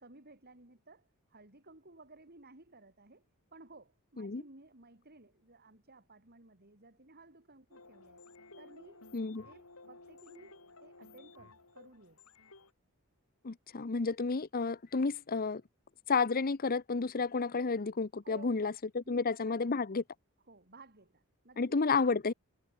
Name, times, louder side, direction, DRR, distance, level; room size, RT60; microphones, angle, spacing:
voice 1, 0.0-8.2 8.6-9.1 9.4-12.2 18.2-18.7 19.0-19.8 20.5-21.9, right 2 dB, 45° right, 4.7 m, -57 dB
sound 1, 7.7-12.7, left 3 dB, 75° left, 5.6 m, -56 dB
voice 2, 9.1-9.5 13.4-15.6 16.1-20.0 21.6-22.3, left 4 dB, 40° left, 0.7 m, -31 dB
head